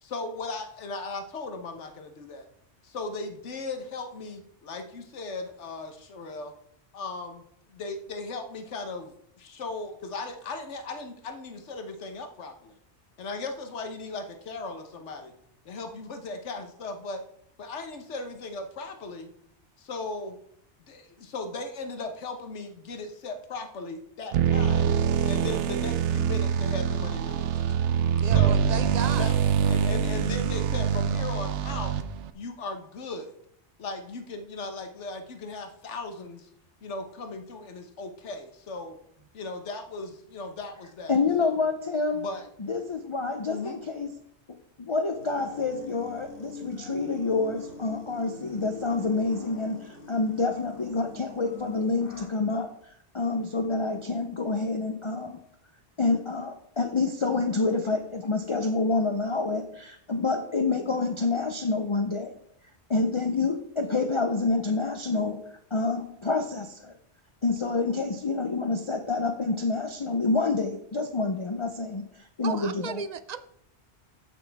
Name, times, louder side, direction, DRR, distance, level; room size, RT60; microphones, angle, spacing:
voice 1, 0.0-2.5 2.8-6.5 6.9-12.8 13.2-15.3 15.6-17.2 17.6-19.3 19.8-20.4 20.8-24.9 25.2-27.8 28.2-28.7 29.1-29.4 29.6-31.9 32.3-33.3 33.8-36.5 36.8-39.0 39.3-41.7 42.1-42.5 43.5-43.8, left 3 dB, 85° left, 6 dB, 1.4 m, -37 dB
sound 1, 24.3-32.3, right 8 dB, 80° right, 0.9 m, -25 dB
voice 2, 28.2-29.3 72.4-73.4, right 6 dB, 50° right, 13 dB, 0.5 m, -34 dB
voice 3, 41.1-42.2 42.6-44.1 44.8-52.7 53.1-55.4 56.0-62.3 62.9-65.4 65.7-66.9 67.4-73.0, left 3 dB, 35° left, 6 dB, 0.6 m, -27 dB
sound 2, 45.2-52.3, left 4 dB, 55° left, 1.4 m, -44 dB
14.0 x 6.0 x 3.5 m, 0.70 s
omnidirectional pair, 1.2 m